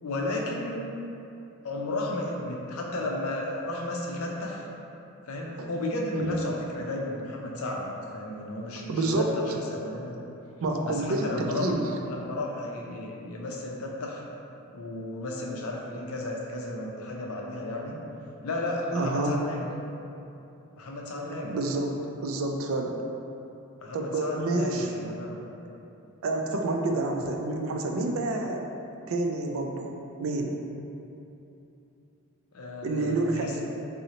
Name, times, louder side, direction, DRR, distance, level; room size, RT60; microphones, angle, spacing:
voice 1, 0.0-0.8 1.6-4.7 5.3-7.9 8.1-10.2 10.8-11.7 12.1-14.2 14.7-18.0 18.4-19.7 20.8-21.6 23.8-25.3 32.5-33.6, left 2 dB, 70° left, -1 dB, 0.5 m, -33 dB
voice 2, 6.1-6.5 8.9-9.4 10.6-11.9 18.9-19.4 21.4-23.0 23.9-24.9 26.2-28.6 29.1-30.6 32.8-33.6, right 2 dB, 65° right, 2 dB, 0.3 m, -28 dB
3.8 x 2.0 x 2.8 m, 2.8 s
head